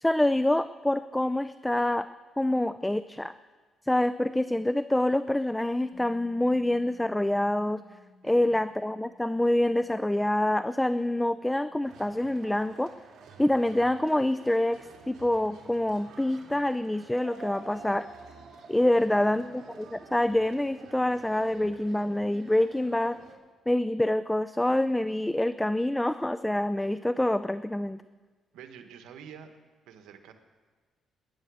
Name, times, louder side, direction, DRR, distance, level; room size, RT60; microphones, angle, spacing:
voice 1, 0.0-2.1 2.4-3.3 3.9-7.8 8.2-12.9 13.4-18.1 18.7-23.2 23.7-28.0, left 1 dB, 10° left, 14 dB, 0.4 m, -26 dB
Bass guitar, 5.9-12.2, left 3 dB, 35° left, 1.7 m, -58 dB
voice 2, 8.2-8.6 19.0-19.4 28.5-29.6 29.9-30.3, right 8 dB, 90° right, 6 dB, 1.4 m, -48 dB
sound 1, 11.8-23.3, right 4 dB, 70° right, 2.5 m, -49 dB
20.0 x 10.5 x 6.4 m, 1.4 s
cardioid pair, 90°, 0 cm